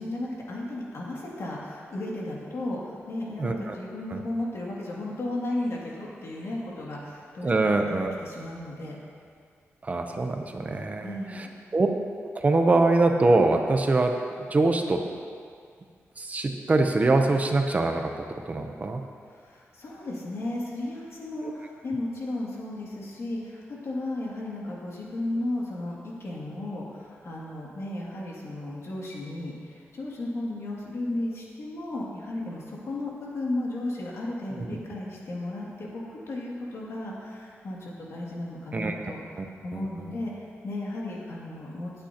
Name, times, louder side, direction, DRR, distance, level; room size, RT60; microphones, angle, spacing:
voice 1, 0.0-7.8 8.2-9.0 11.0-11.5 19.3-41.9, left 1 dB, 65° left, -4 dB, 2.3 m, -34 dB
voice 2, 3.4-3.7 4.1-4.2 7.4-8.1 9.8-11.5 11.7-11.9 12.3-14.2 14.5-15.0 16.2-18.1 18.5-19.0 34.6-34.7 38.7-38.9 39.4-39.5 39.7-40.2, right 2 dB, 30° right, 4 dB, 0.7 m, -23 dB
18.5 x 9.0 x 2.9 m, 2.2 s
wide cardioid pair, 165°, 5 cm